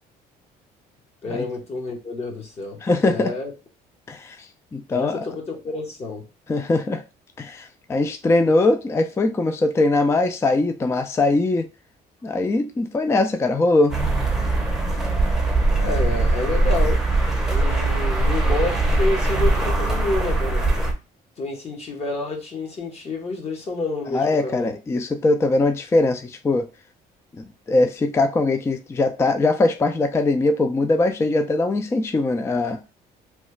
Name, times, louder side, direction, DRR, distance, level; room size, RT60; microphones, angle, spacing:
voice 1, 1.2-3.5 4.9-6.2 15.7-17.0 17.5-20.7 21.4-24.7, left 2 dB, 40° left, 1.1 m, -29 dB
voice 2, 2.8-3.3 4.1-4.4 4.7-5.2 6.5-7.0 7.4-11.7 12.2-14.0 24.1-26.6 27.4-32.8, left 2 dB, 15° left, 0.3 m, -21 dB
sound 1, 13.9-20.9, right 2 dB, 5° right, 0.7 m, -21 dB
3.1 x 2.3 x 3.1 m
cardioid pair, 110°, 17 cm